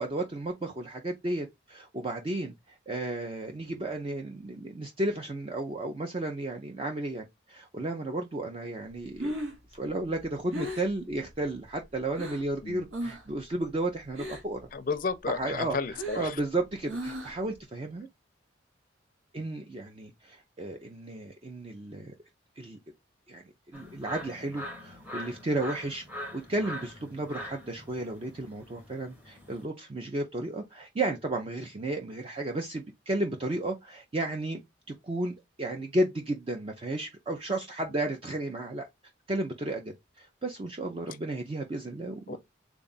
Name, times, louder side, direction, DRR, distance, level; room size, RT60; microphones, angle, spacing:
voice 1, 0.0-9.3 9.7-14.6 15.3-15.8 16.1-18.1 19.3-22.1 22.6-22.8 23.3-23.4 23.7-26.0 26.3-34.6 35.0-38.9 39.3-42.4, right 2 dB, 30° right, 0.4 m, -33 dB
Breathing, 9.1-12.5 12.9-13.4 13.6-14.6 15.0-17.5, equal, 85° right, 1.1 m, -38 dB
voice 2, 14.7-16.4 42.3-42.4, left 5 dB, 45° left, 0.4 m, -33 dB
sound 1, 23.7-29.6, left 1 dB, 10° right, 0.8 m, -43 dB
3.6 x 2.3 x 3.9 m
head